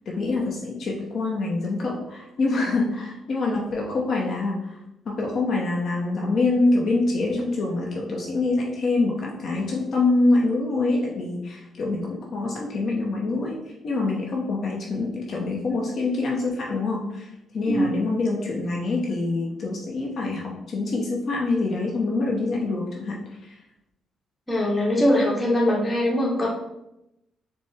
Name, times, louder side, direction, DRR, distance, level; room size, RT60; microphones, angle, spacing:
voice 1, 0.1-4.8 5.1-13.5 13.8-17.3 17.5-23.2 23.5-23.6, left 3 dB, 55° left, -2 dB, 0.6 m, -25 dB
voice 2, 24.5-26.5, left 1 dB, 15° left, -2 dB, 1.1 m, -22 dB
4.4 x 2.1 x 3.3 m, 0.87 s
cardioid pair, 90°, 0 cm